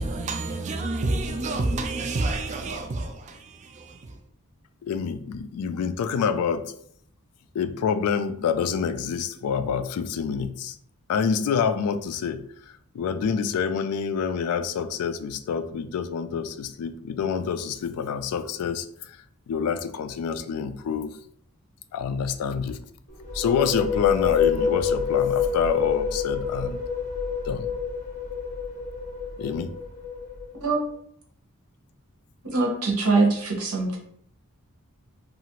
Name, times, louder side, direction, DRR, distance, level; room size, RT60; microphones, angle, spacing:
voice 1, 0.0-4.2, right 2 dB, 35° right, 0.3 m, -29 dB
voice 2, 4.8-6.7 7.5-10.8 11.1-12.4 12.9-19.2 19.5-21.1 21.9-22.8 23.3-26.8 27.5-27.7 29.4-29.7, left 6 dB, 80° left, 0.3 m, -27 dB
sound 1, 23.1-30.7, left 7 dB, 35° left, 0.6 m, -27 dB
voice 3, 32.5-34.0, right 3 dB, 75° right, 0.8 m, -23 dB
2.8 x 2.4 x 2.9 m
head